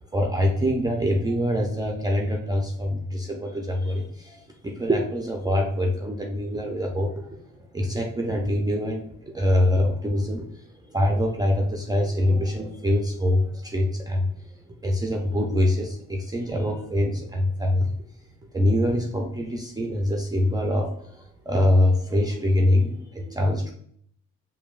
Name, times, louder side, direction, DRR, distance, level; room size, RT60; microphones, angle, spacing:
voice 1, 0.1-7.4 7.7-10.4 10.9-14.3 14.8-17.9 18.5-23.7, left 1 dB, 15° right, 1 dB, 0.5 m, -24 dB
4.8 x 2.7 x 2.4 m, 0.64 s
cardioid pair, 90°, 30 cm